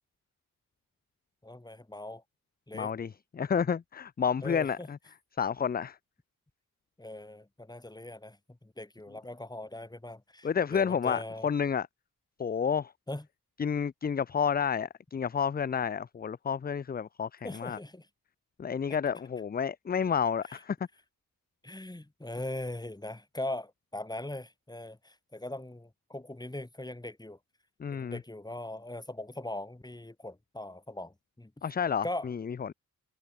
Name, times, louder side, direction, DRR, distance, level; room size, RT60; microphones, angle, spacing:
voice 1, 1.4-2.2 2.7-2.9 4.4-4.9 7.0-11.5 13.1-13.3 17.4-18.1 20.5-20.6 21.6-27.4 27.9-31.5 32.0-32.3, left 1 dB, 10° left, 2.2 m, -40 dB
voice 2, 2.7-5.0 5.4-6.0 10.4-11.9 12.4-12.9 13.6-17.8 18.6-20.8 27.8-28.2 31.6-32.7, left 7 dB, 25° left, 0.5 m, -30 dB
cardioid pair, 65°, 34 cm